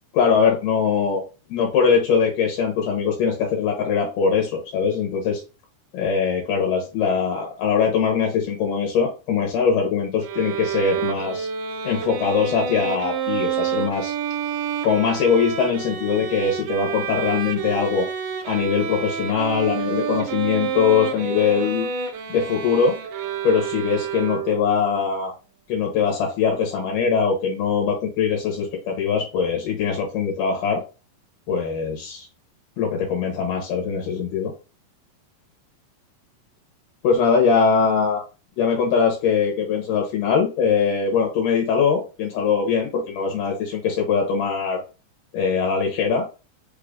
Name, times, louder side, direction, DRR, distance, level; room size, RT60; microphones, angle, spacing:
voice 1, 0.1-1.2 1.5-5.4 5.9-11.5 11.8-14.1 14.8-18.1 18.5-21.9 22.3-22.9 23.4-25.3 25.7-30.8 31.5-32.3 32.8-34.5 37.0-38.2 38.6-44.8 45.3-46.3, left 6 dB, 80° left, 0 dB, 2.5 m, -22 dB
Bowed string instrument, 10.2-24.7, right 7 dB, 80° right, 2.1 m, -28 dB
5.6 x 2.5 x 3.6 m, 0.31 s
omnidirectional pair, 3.9 m